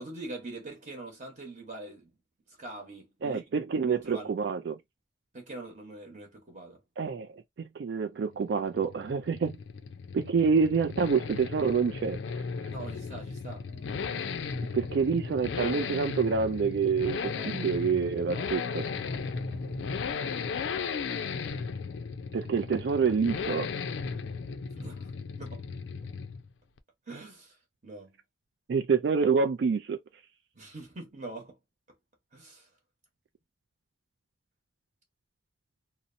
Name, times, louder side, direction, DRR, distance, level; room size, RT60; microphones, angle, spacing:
voice 1, 0.0-2.1 2.5-3.4 3.8-4.3 5.3-6.8 12.7-13.7 17.3-17.5 18.3-19.6 24.8-25.1 25.4-25.6 27.1-28.2 30.5-31.6 32.3-32.7, right 2 dB, 40° right, 1.0 m, -44 dB
voice 2, 3.2-4.8 7.0-7.3 7.8-9.6 10.1-12.2 14.7-18.8 22.3-23.7 28.7-30.0, right 5 dB, 70° right, 0.3 m, -27 dB
Accelerating revving vroom, 8.3-26.5 26.8-26.9, left 5 dB, 80° left, 0.4 m, -36 dB
sound 1, 13.7-17.1 18.8-20.0, left 1 dB, 30° left, 0.6 m, -43 dB
2.7 x 2.0 x 2.5 m
head